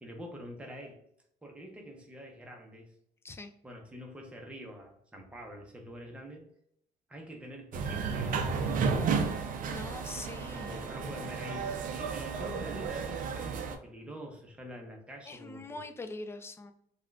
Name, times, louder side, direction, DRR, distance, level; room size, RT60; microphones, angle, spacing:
voice 1, 0.0-1.0 1.4-2.9 3.6-6.5 7.1-10.1 10.6-15.8, equal, 5° right, 1 dB, 0.7 m, -46 dB
sound 1, 7.7-13.7, right 5 dB, 55° right, 0.4 m, -33 dB
voice 2, 9.7-10.8 15.3-16.7, left 2 dB, 15° left, 7 dB, 0.3 m, -43 dB
3.5 x 2.3 x 2.4 m, 0.71 s
cardioid pair, 110°, 17 cm